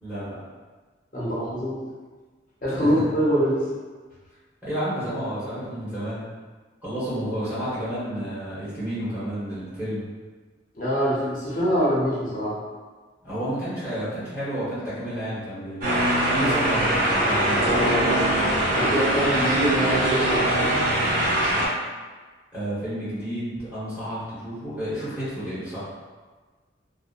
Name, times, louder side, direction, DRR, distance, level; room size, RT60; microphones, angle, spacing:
voice 1, 0.0-0.3 2.8-2.9 4.6-6.2 6.8-10.1 13.2-16.0 16.3-18.0 22.5-25.8, equal, 10° right, -13 dB, 1.1 m, -30 dB
voice 2, 1.1-1.8 2.6-3.6 10.7-12.6 18.8-20.7, equal, 45° left, -8 dB, 0.7 m, -24 dB
sound 1, 15.8-21.7, right 1 dB, 50° right, 0.7 m, -22 dB
2.8 x 2.0 x 2.5 m, 1.4 s
head